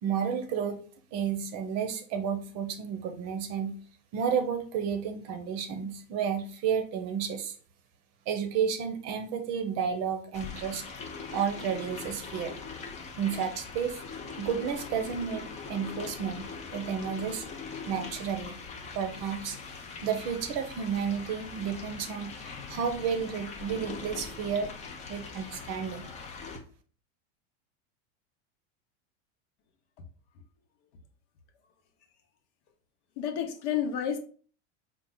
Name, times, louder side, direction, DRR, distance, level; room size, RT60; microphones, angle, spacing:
voice 1, 0.0-0.8 1.1-3.8 4.1-7.6 8.3-10.8 11.3-12.5 13.2-14.0 14.4-17.4 17.9-18.6 18.9-19.6 20.0-24.7 25.1-26.1, right 7 dB, 40° right, 0.7 m, -31 dB
sound 1, 10.3-26.6, left 5 dB, 20° left, 0.5 m, -42 dB
voice 2, 33.2-34.2, left 8 dB, 65° left, 0.9 m, -30 dB
4.5 x 2.4 x 3.7 m
supercardioid pair, 135°, 38 cm